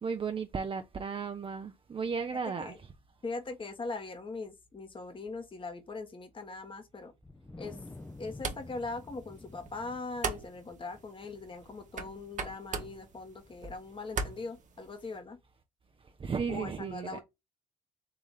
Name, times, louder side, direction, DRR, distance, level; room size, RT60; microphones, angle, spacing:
voice 1, 0.0-2.7 16.2-17.2, right 5 dB, 30° right, 0.6 m, -34 dB
voice 2, 3.2-7.1 7.6-7.8 8.2-15.4 16.5-17.2, left 3 dB, 30° left, 1.2 m, -41 dB
Wind, 7.2-13.7, left 2 dB, 10° left, 0.5 m, -51 dB
sound 1, 7.6-15.2, right 5 dB, 50° right, 1.0 m, -41 dB
3.8 x 3.0 x 3.8 m
hypercardioid pair, 50°, 17 cm